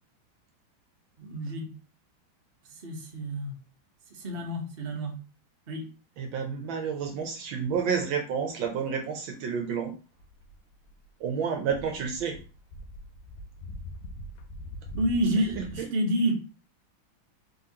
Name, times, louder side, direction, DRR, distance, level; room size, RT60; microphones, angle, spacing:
voice 1, 1.2-1.7 2.7-3.5 4.1-5.1 5.7-5.8 15.0-16.4, right 1 dB, 35° right, 0 dB, 1.0 m, -29 dB
voice 2, 6.2-9.9 11.2-12.4 15.8-15.9, right 6 dB, 70° right, 3 dB, 1.4 m, -30 dB
sound 1, 10.2-11.3 11.6-15.8, left 1 dB, 80° left, 1.3 m, -42 dB
3.8 x 3.8 x 2.8 m, 0.35 s
omnidirectional pair, 2.3 m